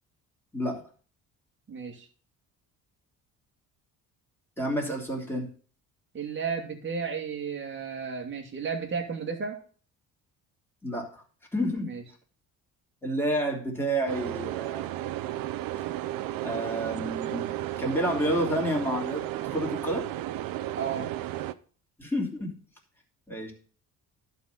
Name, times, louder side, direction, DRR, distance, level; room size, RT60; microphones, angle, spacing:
voice 1, 0.5-0.9 4.6-5.5 10.8-11.2 11.5-11.9 13.0-14.9 16.4-20.1 22.0-22.5 23.3-23.5, equal, 5° left, -1 dB, 3.2 m, -30 dB
voice 2, 1.7-2.1 6.1-9.6 11.8-12.0 20.8-21.1, right 6 dB, 35° right, 1 dB, 2.2 m, -33 dB
sound 1, 14.1-21.5, right 14 dB, 75° right, 0.7 m, -33 dB
11.5 x 4.2 x 6.7 m, 0.41 s
cardioid pair, 100°, 35 cm